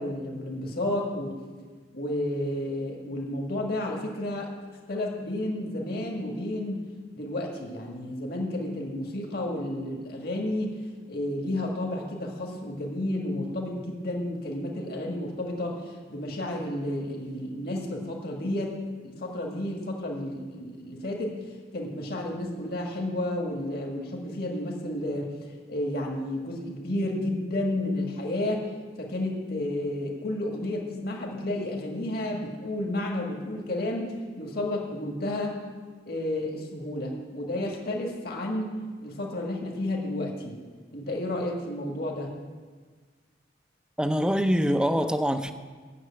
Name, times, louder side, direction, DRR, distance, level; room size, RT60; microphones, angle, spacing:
voice 1, 0.0-1.4 1.9-4.5 4.9-6.8 7.1-10.8 11.1-18.8 19.0-21.3 21.7-25.3 25.7-28.7 29.0-35.6 36.1-40.6 40.9-42.3, left 1 dB, 60° left, 0 dB, 1.8 m, -31 dB
voice 2, 44.0-45.5, equal, 5° right, 8 dB, 0.5 m, -24 dB
9.5 x 6.6 x 8.7 m, 1.5 s
head